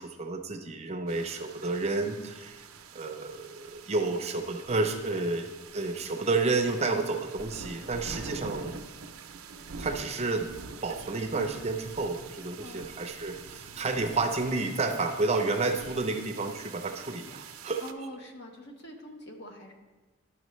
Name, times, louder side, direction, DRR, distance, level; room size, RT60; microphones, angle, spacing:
voice 1, 0.0-2.6 2.9-5.5 5.7-8.8 9.8-10.5 10.8-17.8, right 3 dB, 30° right, 5 dB, 0.5 m, -30 dB
sound 1, 1.1-17.9, right 5 dB, 90° right, 0.6 m, -45 dB
voice 2, 17.8-19.7, equal, 55° left, 2 dB, 1.0 m, -44 dB
11.5 x 5.8 x 3.1 m, 1.2 s
head